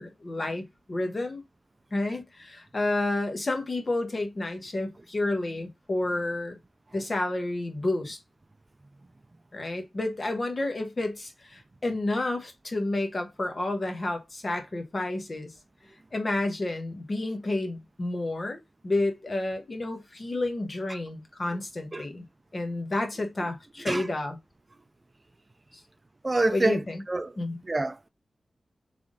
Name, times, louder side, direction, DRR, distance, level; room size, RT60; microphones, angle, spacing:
voice 1, 0.0-1.4 1.9-6.6 6.9-8.2 9.5-15.5 16.1-18.6 18.8-22.2 22.5-24.4 26.5-27.0 27.4-27.6, left 2 dB, 45° left, 1.2 m, -30 dB
voice 2, 26.2-27.3 27.6-28.1, right 2 dB, 35° right, 0.4 m, -27 dB
3.5 x 3.4 x 3.9 m
cardioid pair, 60°, 0 cm